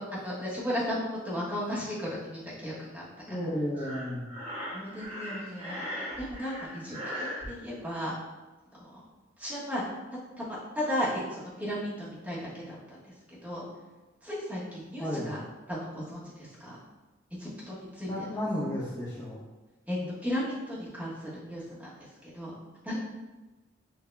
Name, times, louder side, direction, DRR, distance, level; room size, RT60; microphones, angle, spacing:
voice 1, 0.1-3.4 4.7-5.9 6.2-8.1 8.7-9.0 9.4-9.8 10.4-13.7 14.2-15.4 15.7-16.8 17.4-18.1 19.9-22.5 22.8-23.0, equal, 10° right, -9 dB, 1.3 m, -35 dB
voice 2, 3.3-4.3 15.0-15.4 18.1-19.4 20.0-20.1, equal, 20° left, -9 dB, 0.7 m, -33 dB
Breathing, 3.7-7.5, equal, 30° right, 1.2 m, -38 dB
6.5 x 2.7 x 2.2 m, 1.1 s
head